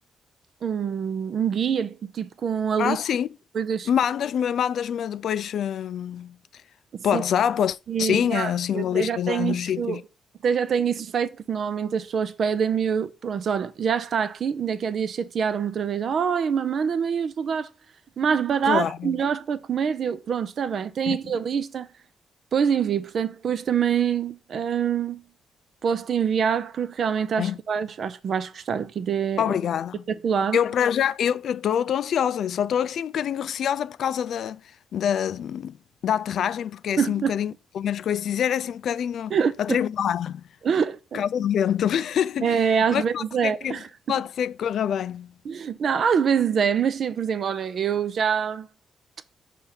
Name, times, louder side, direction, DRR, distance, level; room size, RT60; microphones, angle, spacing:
voice 1, 0.6-3.0 3.5-3.9 6.9-7.2 7.9-10.0 10.4-17.7 18.2-21.9 22.5-25.2 25.8-29.5 30.2-30.6 37.0-37.4 39.3-39.8 40.6-41.2 42.4-43.9 45.4-48.7, right 7 dB, 65° right, 0.6 m, -25 dB
voice 2, 2.8-3.3 3.9-6.4 7.0-10.0 18.7-19.3 21.1-21.2 27.4-27.6 29.4-30.0 30.5-34.6 34.9-35.8 36.0-40.4 41.1-43.8 44.1-45.3, left 9 dB, 75° left, 0.3 m, -26 dB
5.5 x 3.3 x 5.6 m
cardioid pair, 70°, 0 cm